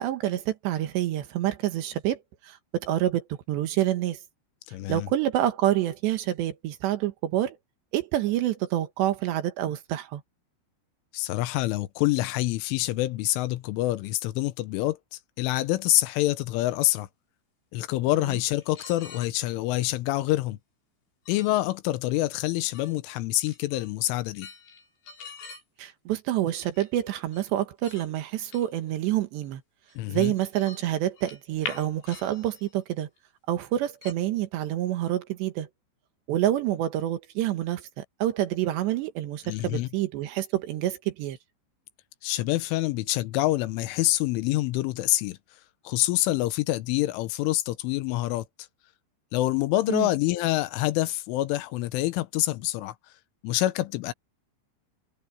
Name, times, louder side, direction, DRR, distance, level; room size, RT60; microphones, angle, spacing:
voice 1, 0.0-4.2 4.9-7.6 7.9-10.2 18.3-18.4 25.8-29.6 30.1-33.1 33.5-35.7 36.3-41.4 49.9-50.1, right 13 dB, 70° right, 3.3 m, -27 dB
voice 2, 4.7-5.1 11.1-17.1 17.7-20.6 21.3-24.5 30.0-30.3 39.4-39.9 42.2-45.4 45.8-48.5 49.3-52.9 53.4-54.1, left 17 dB, 85° left, 3.4 m, -26 dB
sound 1, 18.3-19.4 21.3-21.5 22.7-22.9 23.3-23.9 24.3-25.6 26.7-26.9 27.3-27.5 27.8-28.1 28.5-28.9 29.4-29.5 29.9-30.8 31.1-32.8 33.2-33.3 34.0-34.1, left 5 dB, 65° left, 8.7 m, -43 dB
omnidirectional pair, 5.6 m